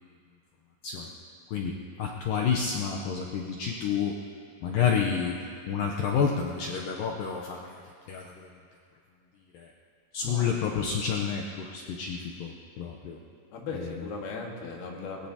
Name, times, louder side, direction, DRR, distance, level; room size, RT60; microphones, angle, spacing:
voice 1, 1.5-4.2 4.6-5.4 5.7-7.8 8.1-8.5 9.5-9.7 10.1-13.2 13.7-14.1, left 6 dB, 90° left, 0 dB, 2.0 m, -29 dB
voice 2, 13.5-15.3, left 3 dB, 65° left, -1 dB, 3.4 m, -37 dB
21.5 x 20.0 x 2.9 m, 2.3 s
omnidirectional pair, 5.1 m